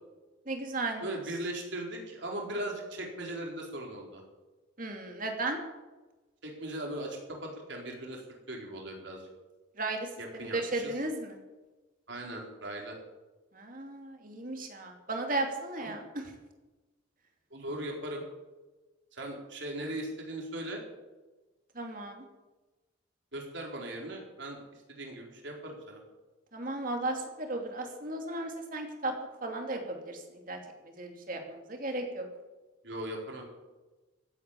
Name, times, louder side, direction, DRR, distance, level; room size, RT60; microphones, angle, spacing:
voice 1, 0.5-1.1 4.8-5.6 9.8-11.4 13.5-16.2 21.7-22.2 26.5-29.1 29.4-30.6 31.0-32.2, right 2 dB, 40° right, 3 dB, 2.8 m, -35 dB
voice 2, 1.0-4.2 6.4-8.2 8.5-9.3 10.2-10.9 12.1-13.0 15.8-16.0 17.5-18.2 19.1-20.8 23.3-26.0 32.8-33.5, right 1 dB, 60° right, 0 dB, 4.2 m, -39 dB
16.0 x 9.2 x 8.5 m, 1.1 s
head